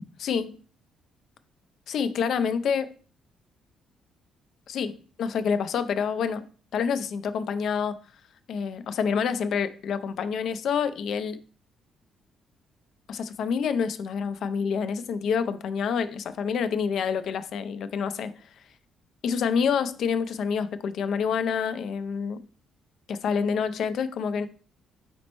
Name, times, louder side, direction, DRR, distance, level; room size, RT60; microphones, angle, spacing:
voice 1, 0.2-0.6 1.9-2.9 4.7-7.9 8.5-11.4 13.1-18.3 19.2-22.4 23.1-24.5, left 6 dB, 70° left, 0.4 m, -27 dB
4.2 x 4.2 x 3.0 m
cardioid pair, 90°, 0 cm